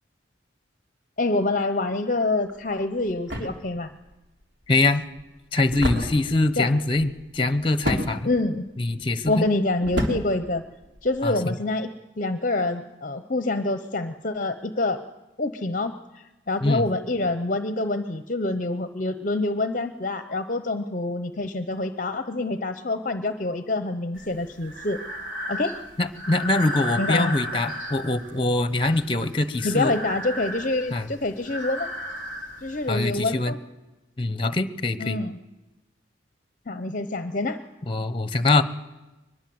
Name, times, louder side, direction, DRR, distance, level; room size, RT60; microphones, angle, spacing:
voice 1, 1.2-3.9 6.6-6.7 8.2-8.7 9.3-10.6 11.0-15.0 15.4-25.0 25.5-25.7 27.0-27.3 29.6-31.9 32.6-33.6 35.0-35.4 36.7-37.6, left 2 dB, 40° left, 9 dB, 0.8 m, -26 dB
sound 1, 2.4-11.3, equal, 65° right, 3.6 m, -33 dB
voice 2, 4.7-5.0 5.5-8.3 8.8-9.5 11.2-11.5 16.6-16.9 26.0-29.9 30.9-31.1 32.9-33.5 34.2-35.2 37.9-38.6, left 2 dB, 25° left, 12 dB, 1.1 m, -23 dB
Breathing, 24.2-33.2, left 1 dB, 85° right, 4.0 m, -35 dB
23.0 x 21.5 x 7.8 m, 1.1 s
head